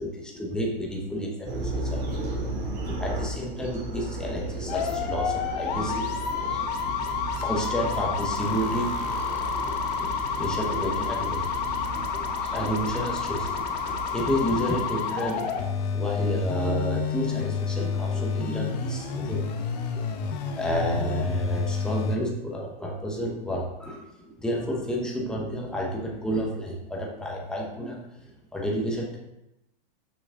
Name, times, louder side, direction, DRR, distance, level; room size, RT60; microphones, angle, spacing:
voice 1, 0.0-2.2 2.5-7.1 7.4-9.3 9.6-19.4 19.9-20.0 20.3-28.0 28.5-29.2, equal, 5° left, -1 dB, 0.9 m, -31 dB
sound 1, 1.4-14.6, right 2 dB, 30° right, 2.3 m, -35 dB
sound 2, 4.7-22.2, left 6 dB, 45° left, 0.8 m, -29 dB
6.1 x 6.0 x 3.7 m, 0.90 s
supercardioid pair, 160°, 29 cm